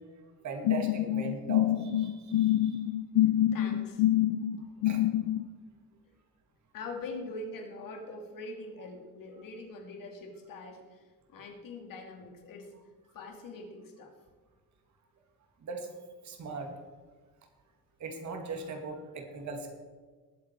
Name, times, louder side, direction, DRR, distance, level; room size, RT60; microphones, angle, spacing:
voice 1, 0.4-2.8 4.8-5.0 15.6-15.9 16.2-16.7 18.0-19.7, right 4 dB, 50° right, 4 dB, 2.3 m, -39 dB
sound 1, 0.6-5.4, left 13 dB, 85° left, 0.6 m, -26 dB
voice 2, 3.5-4.0 6.7-12.7 13.1-14.1, left 2 dB, 60° left, 2 dB, 2.8 m, -43 dB
20.5 x 7.7 x 4.7 m, 1.4 s
cardioid pair, 170°, 37 cm